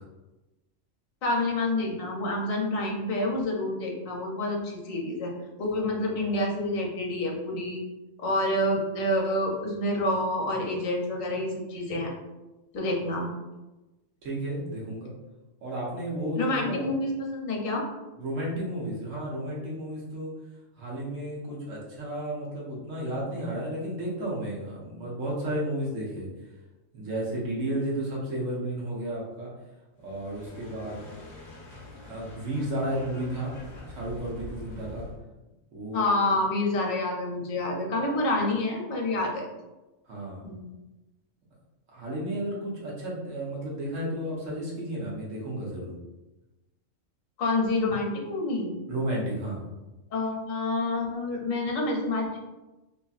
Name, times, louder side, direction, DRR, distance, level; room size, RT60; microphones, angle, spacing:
voice 1, 1.2-5.3 5.6-7.8 8.2-12.1 12.7-13.3 16.3-17.8 35.9-39.5 40.4-40.7 47.4-48.7 50.1-52.4, left 2 dB, 85° left, 0 dB, 1.1 m, -28 dB
voice 2, 14.2-15.1 15.6-16.9 18.2-20.3 20.8-26.3 26.9-29.5 30.0-31.0 32.1-33.5 33.8-35.1 35.7-36.0 40.1-40.6 41.9-46.0 48.9-49.7, right 1 dB, 75° right, -5 dB, 1.3 m, -32 dB
sound 1, 30.0-35.2, left 2 dB, 45° left, 0.6 m, -45 dB
2.8 x 2.7 x 2.3 m, 1.1 s
omnidirectional pair, 1.3 m